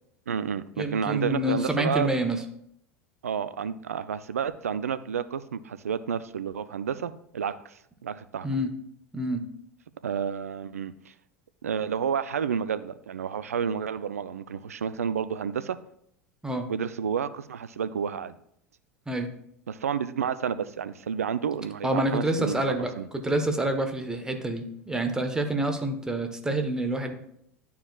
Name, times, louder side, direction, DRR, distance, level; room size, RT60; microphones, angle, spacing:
voice 1, 0.3-2.1 3.2-7.7 8.0-8.5 10.0-11.1 11.6-15.8 16.7-18.3 19.7-23.1, right 7 dB, 80° right, 14 dB, 0.4 m, -30 dB
voice 2, 0.8-2.4 8.4-8.7 9.1-9.4 16.4-16.6 19.1-19.3 21.8-27.1, right 1 dB, 10° right, 5 dB, 1.0 m, -27 dB
11.5 x 4.7 x 2.3 m, 0.71 s
figure-of-eight pair, 80°, 8 cm